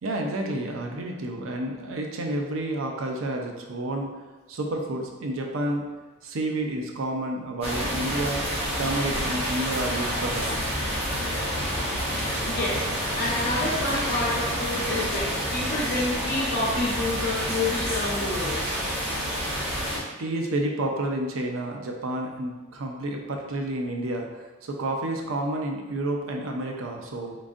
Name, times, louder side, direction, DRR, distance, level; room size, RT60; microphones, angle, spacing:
voice 1, 0.0-4.1 4.5-5.8 6.2-8.4 8.8-10.6 20.2-27.4, right 1 dB, 75° right, 2 dB, 0.5 m, -30 dB
sound 1, 7.6-20.0, equal, 30° right, 1.1 m, -28 dB
voice 2, 12.4-12.8 13.1-18.6, left 2 dB, 50° left, -4 dB, 1.0 m, -28 dB
3.8 x 3.6 x 2.5 m, 1.3 s
head